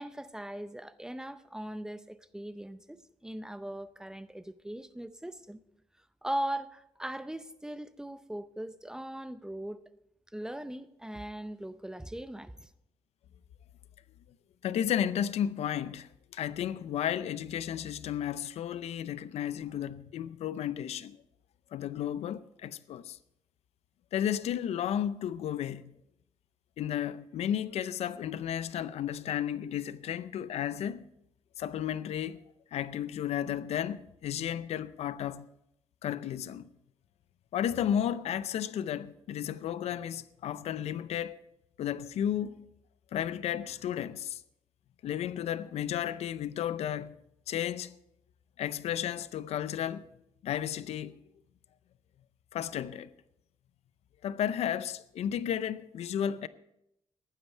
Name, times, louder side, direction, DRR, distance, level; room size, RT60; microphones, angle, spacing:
voice 1, 0.0-5.6 6.2-9.8 10.3-12.7, right 1 dB, 5° right, 0.6 m, -39 dB
voice 2, 14.6-21.2 21.7-23.2 24.1-26.0 26.8-31.1 31.6-32.4 32.7-35.5 36.0-36.7 37.5-41.4 41.8-42.6 43.1-44.4 45.0-47.2 47.5-47.9 48.6-50.0 50.4-51.2 52.5-53.1 54.2-56.5, left 10 dB, 80° left, 0.6 m, -33 dB
15.0 x 11.5 x 4.5 m
cardioid pair, 135°, 11 cm